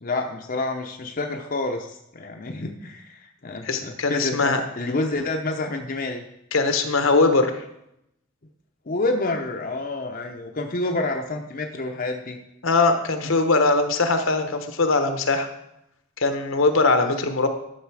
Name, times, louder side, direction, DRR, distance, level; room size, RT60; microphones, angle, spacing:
voice 1, 0.0-6.2 8.9-12.4 13.2-13.3, left 2 dB, 45° left, 2 dB, 0.8 m, -28 dB
voice 2, 3.6-4.6 6.5-7.5 12.6-15.5 16.2-17.5, left 3 dB, 70° left, 7 dB, 1.1 m, -21 dB
11.5 x 6.6 x 4.8 m, 0.82 s
head